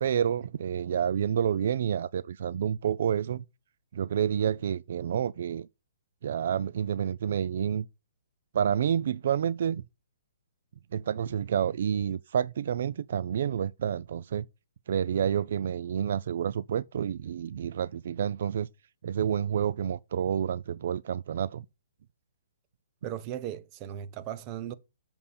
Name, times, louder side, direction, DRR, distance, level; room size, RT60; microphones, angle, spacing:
voice 1, 0.0-3.4 3.9-5.7 6.2-7.8 8.5-9.8 10.9-14.5 14.9-18.7 19.0-21.6, right 8 dB, 60° right, 0.3 m, -29 dB
voice 2, 23.0-24.7, right 11 dB, 25° right, 0.8 m, -37 dB
7.5 x 7.0 x 4.2 m
hypercardioid pair, 160°, 0 cm